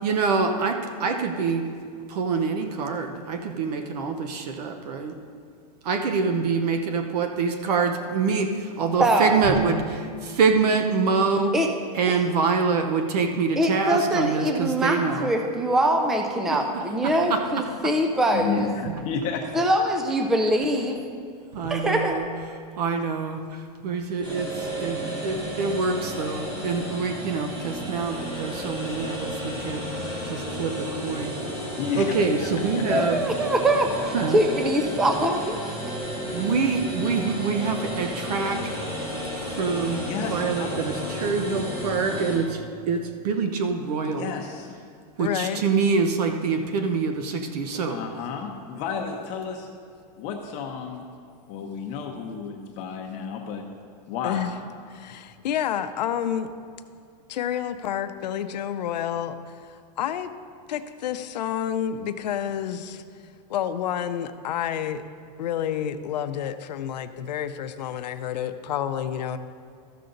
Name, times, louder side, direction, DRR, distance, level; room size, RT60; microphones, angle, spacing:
voice 1, 0.0-1.7 2.1-5.2 5.8-11.5 11.9-15.3 16.5-17.9 18.9-19.0 21.5-22.3 22.8-29.8 30.2-31.4 31.9-33.2 34.1-34.4 36.2-39.0 39.4-44.3 45.2-48.0, right 4 dB, 70° right, 6 dB, 0.8 m, -26 dB
voice 2, 9.0-9.4 11.5-11.7 12.1-12.2 13.6-18.6 19.5-21.0 21.7-22.2 32.9-35.9, right 1 dB, ahead, 4 dB, 0.3 m, -23 dB
voice 3, 18.3-19.6 31.7-32.1 32.4-33.2 34.2-34.3 40.1-41.0 44.2-44.7 47.9-49.7 50.2-51.0 51.5-53.6 54.1-54.5, left 6 dB, 35° left, 2 dB, 0.7 m, -32 dB
sound 1, 24.2-42.4, equal, 20° right, 2.5 m, -32 dB
voice 4, 45.2-45.6 54.2-54.5 54.9-56.5 57.3-60.3 60.7-63.0 63.5-65.0 65.4-69.4, left 9 dB, 90° left, 10 dB, 0.6 m, -29 dB
13.5 x 6.8 x 3.9 m, 2.2 s
supercardioid pair, 155°, 21 cm